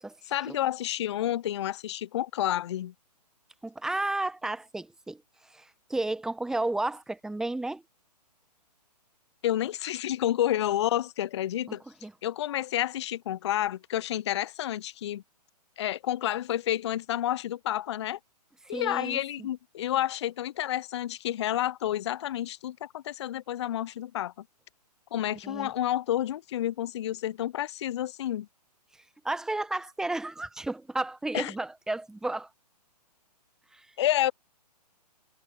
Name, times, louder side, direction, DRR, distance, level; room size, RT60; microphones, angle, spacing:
voice 1, 0.3-2.9 9.4-11.8 12.2-15.2 15.8-18.2 18.7-24.3 25.1-28.5 31.3-31.5 34.0-34.3, left 12 dB, 45° left, 0.4 m, -30 dB
voice 2, 3.6-7.8 11.7-11.8 12.0-12.1 18.6-19.5 25.4-25.7 29.2-32.5 33.7-33.9, right 2 dB, 5° right, 1.1 m, -33 dB
figure-of-eight pair, 130°, 21 cm